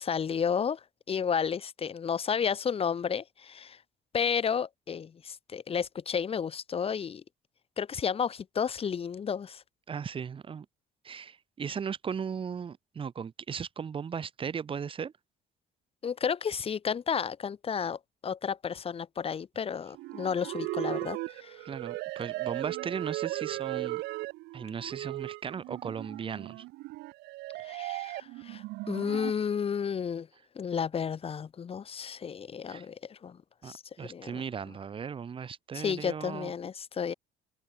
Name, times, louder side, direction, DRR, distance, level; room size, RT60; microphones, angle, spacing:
voice 1, 0.0-3.8 4.1-7.2 7.8-9.6 16.0-21.6 27.6-30.3 30.5-33.4 33.6-34.4 35.7-37.1, left 7 dB, 35° left, 1.1 m, -32 dB
voice 2, 9.9-10.7 11.0-15.1 21.6-24.0 24.5-26.6 32.7-32.9 33.6-36.5, right 6 dB, 30° right, 0.9 m, -37 dB
sound 1, 19.9-29.3, right 20 dB, 80° right, 0.5 m, -37 dB
cardioid pair, 110°, 17 cm